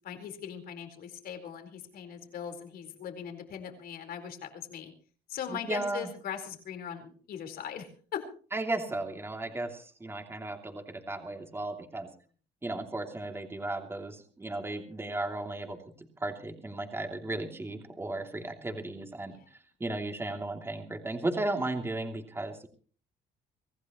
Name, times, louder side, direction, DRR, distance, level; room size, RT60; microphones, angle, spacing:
voice 1, 0.0-4.9 5.3-8.2 19.3-19.5, left 8 dB, 65° left, 5 dB, 4.5 m, -40 dB
voice 2, 5.5-6.1 8.5-12.1 12.6-15.8 16.2-19.3 19.8-22.7, right 2 dB, 15° right, 3 dB, 2.9 m, -35 dB
25.5 x 15.5 x 3.1 m, 0.43 s
cardioid pair, 110°, 17 cm